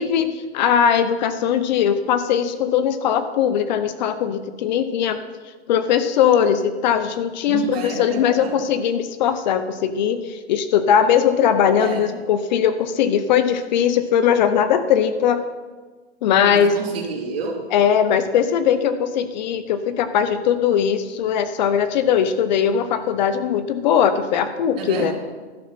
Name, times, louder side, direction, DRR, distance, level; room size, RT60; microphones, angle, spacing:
voice 1, 0.0-5.2 5.7-15.4 16.2-16.7 17.7-25.1, left 8 dB, 40° left, 11 dB, 0.7 m, -20 dB
voice 2, 7.5-8.6 11.8-12.1 16.5-17.6 24.8-25.1, right 4 dB, 60° right, 0 dB, 2.7 m, -29 dB
12.0 x 6.4 x 5.7 m, 1.4 s
hypercardioid pair, 140°, 33 cm